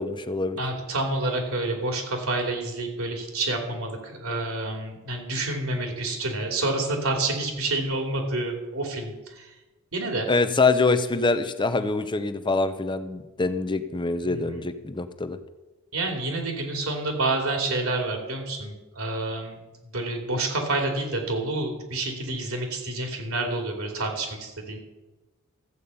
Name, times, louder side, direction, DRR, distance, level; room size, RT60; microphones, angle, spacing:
voice 1, 0.0-0.6 10.3-15.4, left 3 dB, 20° left, 10 dB, 0.7 m, -25 dB
voice 2, 0.6-9.5 9.9-10.3 14.3-14.4 15.9-19.6 19.9-24.8, right 2 dB, 70° right, 3 dB, 2.8 m, -28 dB
14.0 x 8.4 x 5.5 m, 1.1 s
head